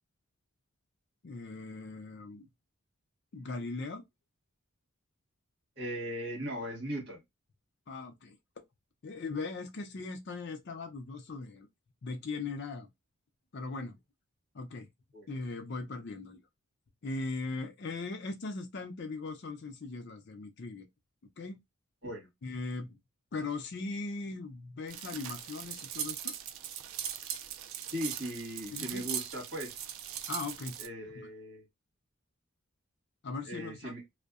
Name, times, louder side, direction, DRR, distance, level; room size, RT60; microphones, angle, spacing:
voice 1, 1.2-2.5 3.3-4.0 7.9-8.4 9.0-11.7 12.0-12.9 13.5-14.0 14.5-14.9 15.3-16.4 17.0-20.9 21.4-21.6 22.4-23.0 23.3-26.3 28.7-29.1 30.3-30.8 31.2-31.3 33.2-33.9, left 3 dB, 50° left, 0.4 m, -39 dB
voice 2, 5.8-7.2 15.1-15.3 22.0-22.3 27.9-29.8 30.8-31.6 33.4-34.0, equal, 50° right, 1.4 m, -38 dB
sound 1, 24.9-30.9, right 9 dB, 65° right, 0.3 m, -40 dB
2.6 x 2.1 x 2.3 m
head